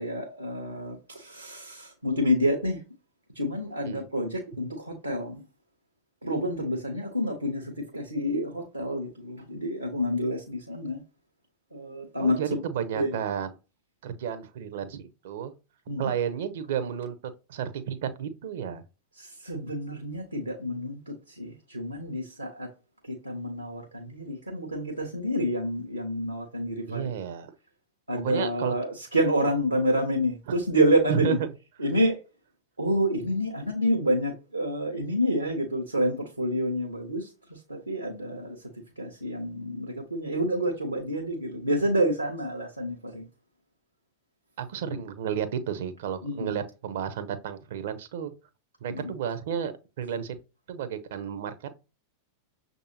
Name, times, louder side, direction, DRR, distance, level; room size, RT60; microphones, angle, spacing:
voice 1, 0.0-2.8 3.3-5.4 6.2-11.0 11.7-12.6 12.9-13.2 15.9-16.1 19.2-22.7 23.1-27.1 28.1-31.4 31.8-32.2 32.8-38.6 39.0-43.2 44.8-45.0 46.2-46.5 48.9-49.1, equal, 85° right, 0.9 m, -28 dB
voice 2, 12.2-13.5 14.0-15.5 16.0-18.8 26.9-27.5 28.2-28.7 30.5-30.6 31.1-31.5 44.6-48.3 48.8-50.3 50.7-51.5, right 8 dB, 55° right, 0.6 m, -32 dB
6.6 x 2.6 x 2.8 m
figure-of-eight pair, 90°, 0 cm